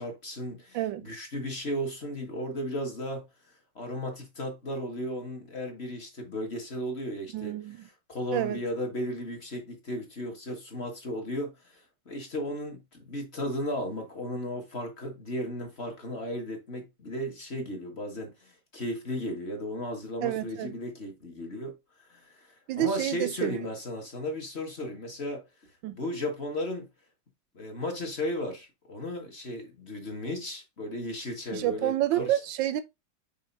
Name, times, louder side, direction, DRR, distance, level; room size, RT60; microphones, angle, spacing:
voice 1, 0.0-3.3 3.7-7.6 8.1-21.7 22.0-25.4 25.9-26.9 27.5-32.4, left 1 dB, 35° left, 1.5 m, -35 dB
voice 2, 0.7-1.1 7.3-7.9 8.3-8.6 20.2-20.8 22.7-23.6 25.8-26.0 31.5-32.8, right 13 dB, 75° right, 1.2 m, -29 dB
5.9 x 4.6 x 3.9 m
omnidirectional pair, 2.2 m